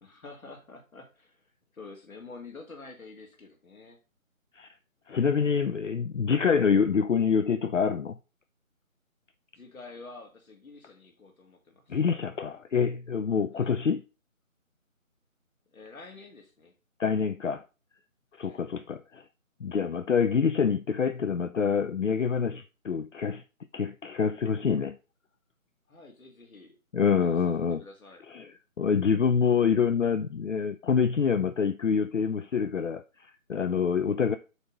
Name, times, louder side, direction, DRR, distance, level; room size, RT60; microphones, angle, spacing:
voice 1, 0.0-4.0 9.5-12.0 13.5-13.7 15.7-16.7 18.3-18.6 25.9-26.8 27.2-28.2, left 3 dB, 80° left, 2.1 m, -48 dB
voice 2, 5.1-8.2 11.9-14.0 17.0-17.6 18.4-19.2 19.6-23.4 23.7-25.0 26.9-27.8 28.3-28.5 28.8-34.4, left 6 dB, 60° left, 0.6 m, -26 dB
8.0 x 3.4 x 5.2 m
figure-of-eight pair, 175°, 41 cm